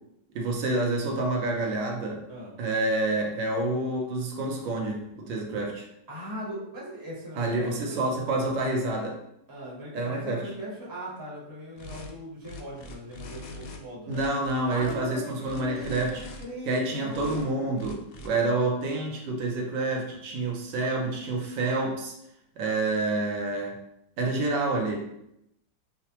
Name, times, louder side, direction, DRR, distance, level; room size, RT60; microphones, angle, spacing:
voice 1, 0.3-2.2 2.6-5.9 7.4-9.2 9.9-10.4 14.1-16.2 16.7-22.1 22.6-23.8 24.2-25.3, right 2 dB, 80° right, 0 dB, 1.4 m, -28 dB
voice 2, 6.1-8.0 9.5-14.2 14.7-17.8, right 1 dB, 15° right, -7 dB, 0.9 m, -39 dB
sound 1, 11.8-12.1 12.4-13.8 14.1-15.0 15.4-16.4 17.1-17.4 17.8-18.3, left 2 dB, 85° left, 0.7 m, -42 dB
4.8 x 2.1 x 2.8 m, 0.80 s
omnidirectional pair, 2.0 m